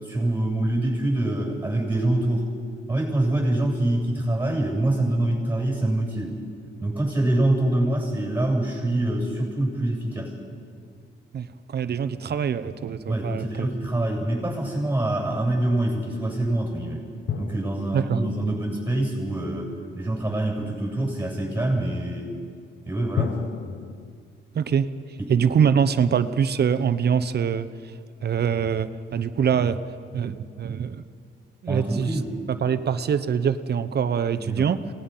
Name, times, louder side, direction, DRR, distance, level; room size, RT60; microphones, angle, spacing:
voice 1, 0.0-2.5 2.9-6.4 6.8-10.4 13.1-17.0 17.4-22.3 22.8-23.3 25.2-25.3 31.7-32.3 34.4-34.7, right 1 dB, 10° right, 0 dB, 7.6 m, -25 dB
voice 2, 11.3-13.7 17.9-18.2 24.5-24.9 25.3-27.9 28.2-29.8 30.1-31.0 31.6-32.2 32.5-34.8, right 7 dB, 55° right, 11 dB, 0.9 m, -24 dB
sound 1, 17.3-19.9 23.2-24.1, left 8 dB, 65° left, 0.9 m, -34 dB
27.5 x 19.0 x 5.7 m, 2.2 s
cardioid pair, 100°, 20 cm